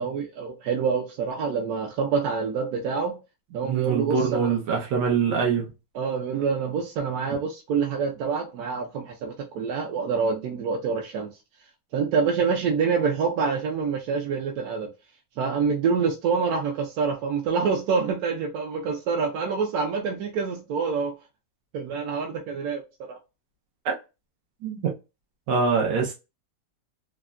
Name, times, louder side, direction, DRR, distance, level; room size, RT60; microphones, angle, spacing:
voice 1, 0.0-3.2 3.5-4.5 5.9-11.3 11.9-14.9 15.4-21.1 21.7-22.8 23.1-23.2, right 5 dB, 70° right, 1.0 m, -26 dB
voice 2, 3.6-5.6 23.8-23.9 24.6-24.9 25.5-26.1, right 5 dB, 85° right, 1.4 m, -24 dB
3.5 x 2.1 x 2.3 m
omnidirectional pair, 1.9 m